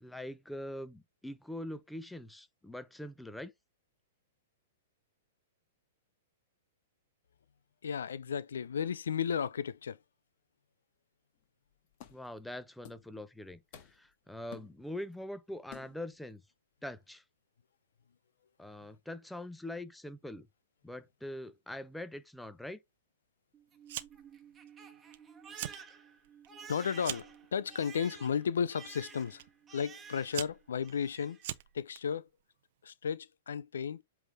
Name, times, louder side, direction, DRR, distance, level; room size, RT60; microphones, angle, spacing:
voice 1, 0.0-3.5 12.1-13.6 13.9-16.4 16.8-17.2 18.6-20.5 20.8-22.8, left 1 dB, 5° left, 0.8 m, -43 dB
voice 2, 7.8-10.0 26.7-29.4 29.7-31.4 31.7-32.3 32.8-34.0, left 7 dB, 80° left, 0.4 m, -34 dB
sound 1, 11.4-11.5 11.9-12.4 12.8-13.1 13.5-14.1 14.5-15.1 15.7-16.1, left 10 dB, 50° left, 1.5 m, -53 dB
Crying sobbing, 23.5-30.5 30.8-31.5, right 6 dB, 20° right, 1.3 m, -52 dB
Fire, 23.9-24.4 24.7-25.2 25.5-25.8 26.2-27.4 28.2-28.5 29.4-29.5 30.0-32.0, right 14 dB, 60° right, 0.6 m, -41 dB
8.0 x 3.5 x 3.5 m
hypercardioid pair, 120°, 0 cm